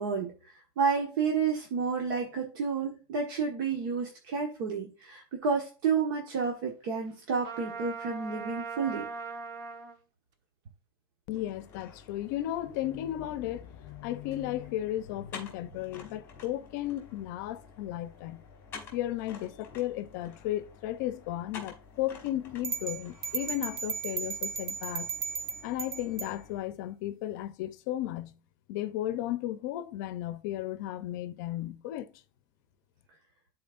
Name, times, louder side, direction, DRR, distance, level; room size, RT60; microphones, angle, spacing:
voice 1, 0.0-9.0, right 5 dB, 60° right, 1.5 m, -30 dB
Trumpet, 7.4-10.0, right 4 dB, 35° right, 1.1 m, -39 dB
voice 2, 11.3-18.4 18.9-25.1 25.6-28.3 28.7-32.1, left 13 dB, 50° left, 0.7 m, -34 dB
sound 1, 11.3-26.6, left 5 dB, 20° left, 2.4 m, -50 dB
sound 2, 22.6-26.3, right 5 dB, 75° right, 1.0 m, -35 dB
11.5 x 4.4 x 2.5 m
supercardioid pair, 175°, 12 cm